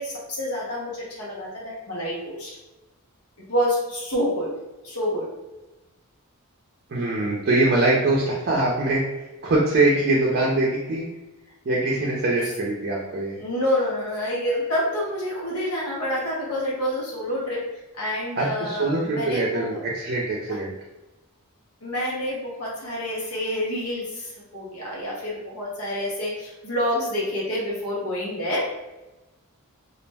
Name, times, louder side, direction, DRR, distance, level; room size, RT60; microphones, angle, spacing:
voice 1, 0.0-2.5 3.5-4.5 4.8-5.3 13.4-17.6 17.9-19.8 21.8-28.6, equal, 80° left, -5 dB, 0.9 m, -28 dB
voice 2, 6.9-9.0 9.4-11.0 11.7-13.4 18.4-20.7, right 2 dB, 45° right, -3 dB, 0.5 m, -23 dB
2.4 x 2.0 x 3.3 m, 1.0 s
head